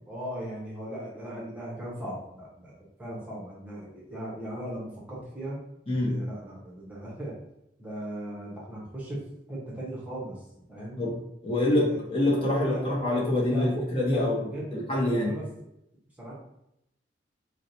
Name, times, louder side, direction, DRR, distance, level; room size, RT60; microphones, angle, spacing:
voice 1, 0.1-2.7 3.0-5.6 6.0-7.3 7.8-11.0 11.6-12.0 12.3-12.8 13.5-14.8 15.2-15.5 16.2-16.3, right 1 dB, 10° right, -5 dB, 0.8 m, -37 dB
voice 2, 11.4-15.3, left 1 dB, 30° left, -5 dB, 0.9 m, -26 dB
4.5 x 2.2 x 2.7 m, 0.81 s
head